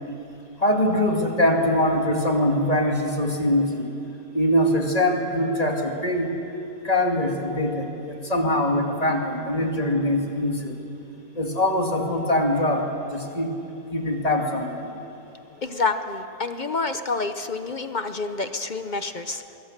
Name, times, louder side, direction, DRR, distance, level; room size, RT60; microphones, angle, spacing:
voice 1, 0.6-3.9 4.3-6.3 6.8-10.8 11.4-13.5 13.9-14.9, left 1 dB, 25° left, 2 dB, 2.3 m, -23 dB
voice 2, 15.6-19.6, left 3 dB, 40° left, 9 dB, 0.7 m, -28 dB
25.5 x 23.0 x 6.7 m, 2.8 s
omnidirectional pair, 1.7 m